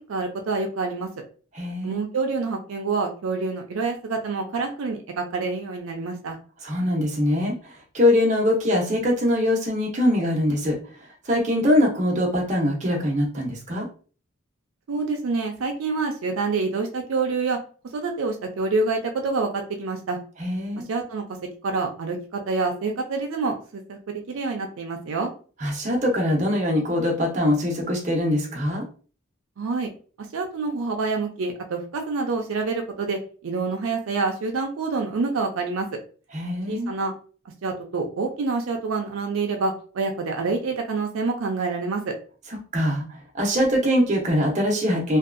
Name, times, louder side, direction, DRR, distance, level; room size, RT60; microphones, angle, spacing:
voice 1, 0.1-1.1 1.8-6.4 14.9-17.6 17.9-20.2 20.9-21.2 21.6-24.0 24.3-25.3 29.6-29.9 30.3-36.0 36.7-37.1 37.6-42.1, right 4 dB, 75° right, 3 dB, 0.4 m, -27 dB
voice 2, 1.5-2.0 6.6-10.8 11.3-13.9 20.4-20.8 25.6-28.8 36.3-36.9 42.7-45.2, left 1 dB, 35° right, -1 dB, 0.7 m, -23 dB
2.6 x 2.3 x 2.4 m, 0.40 s
head